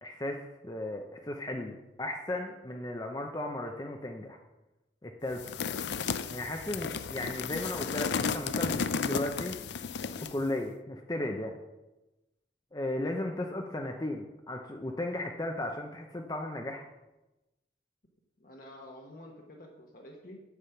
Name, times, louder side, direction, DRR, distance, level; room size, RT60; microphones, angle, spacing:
voice 1, 0.0-4.4 5.0-5.6 6.3-9.5 10.2-11.5 12.7-16.9, left 1 dB, 20° left, 3 dB, 0.6 m, -35 dB
sound 1, 5.4-10.4, left 6 dB, 75° left, 0.5 m, -33 dB
voice 2, 18.4-20.4, left 1 dB, 50° left, 0 dB, 1.1 m, -49 dB
8.3 x 7.5 x 5.7 m, 1.0 s
head